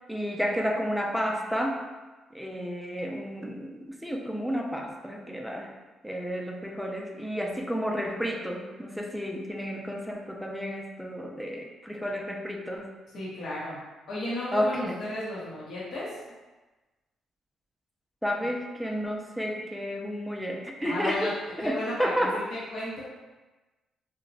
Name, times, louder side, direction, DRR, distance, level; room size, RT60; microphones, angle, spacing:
voice 1, 0.1-1.8 2.3-5.7 6.0-12.9 14.5-14.9 18.2-22.4, equal, ahead, 1 dB, 0.4 m, -31 dB
voice 2, 13.1-13.8 14.1-16.2 20.8-21.3 21.6-23.0, left 1 dB, 60° left, -8 dB, 0.7 m, -34 dB
2.9 x 2.1 x 2.6 m, 1.2 s
cardioid pair, 90°, 0 cm